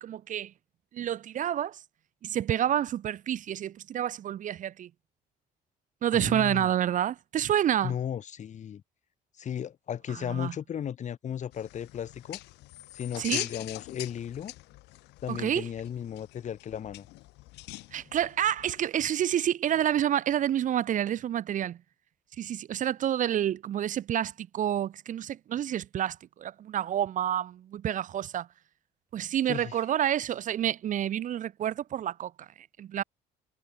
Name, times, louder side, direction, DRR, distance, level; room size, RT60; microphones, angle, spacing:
voice 1, 0.0-0.5 0.9-1.8 2.2-4.9 6.0-7.9 10.2-10.5 13.2-13.5 15.3-15.7 17.9-21.8 22.4-28.5 29.1-33.0, right 10 dB, 50° right, 0.7 m, -29 dB
voice 2, 6.1-6.7 7.8-8.8 9.4-12.4 12.9-14.5 15.2-17.1 29.5-29.8, left 9 dB, 45° left, 1.4 m, -35 dB
sound 1, 11.5-18.9, left 20 dB, 90° left, 1.9 m, -42 dB
cardioid pair, 110°, 17 cm